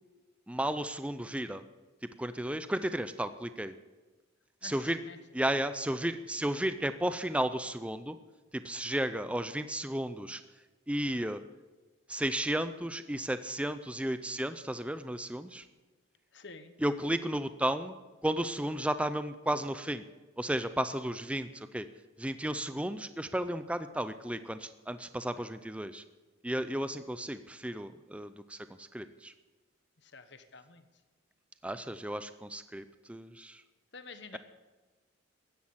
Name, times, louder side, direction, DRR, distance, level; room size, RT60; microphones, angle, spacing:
voice 1, 0.5-1.6 2.0-3.7 4.6-5.0 5.3-8.2 8.5-10.4 10.9-11.4 12.1-15.7 16.8-18.0 18.2-20.0 20.4-21.9 22.2-26.0 26.4-29.3 31.6-33.6, right 1 dB, 5° right, 12 dB, 0.5 m, -33 dB
voice 2, 4.6-5.2 16.3-16.7 30.0-30.8 33.9-34.4, left 4 dB, 55° left, 10 dB, 1.3 m, -49 dB
15.0 x 10.5 x 8.8 m, 1.2 s
head